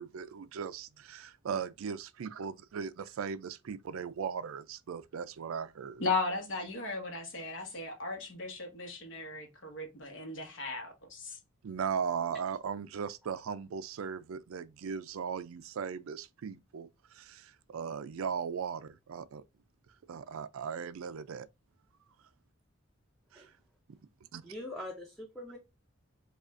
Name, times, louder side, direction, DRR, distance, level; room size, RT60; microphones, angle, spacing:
voice 1, 0.0-6.1 11.6-19.4 20.1-21.5 23.3-23.5 24.3-24.4, right 6 dB, 85° right, 0.4 m, -38 dB
voice 2, 6.0-11.4, left 3 dB, 60° left, 1.1 m, -36 dB
voice 3, 24.4-25.6, left 1 dB, ahead, 0.6 m, -42 dB
4.9 x 2.4 x 2.5 m
head